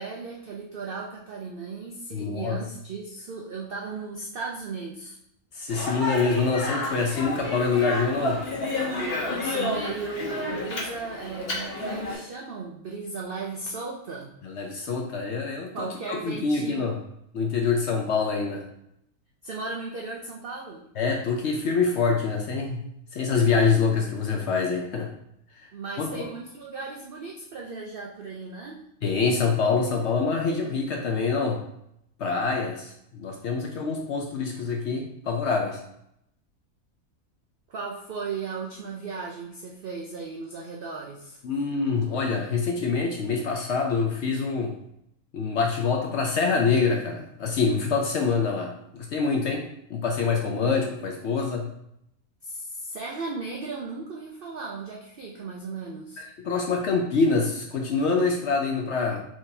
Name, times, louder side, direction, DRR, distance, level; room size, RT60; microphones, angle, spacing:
voice 1, 0.0-5.2 9.3-14.3 15.7-16.9 19.4-20.9 25.7-28.8 37.7-41.4 52.4-56.2, right 4 dB, 80° right, -1 dB, 0.5 m, -36 dB
voice 2, 2.1-2.6 5.5-8.4 14.4-16.9 17.3-18.7 21.0-25.1 26.0-26.3 29.0-31.6 32.2-35.8 41.4-44.7 45.3-51.7 56.2-59.2, left 4 dB, 65° left, 1 dB, 0.7 m, -25 dB
Speech, 5.7-12.2, left 2 dB, 45° left, 1.2 m, -31 dB
4.5 x 3.7 x 2.7 m, 0.77 s
omnidirectional pair, 1.6 m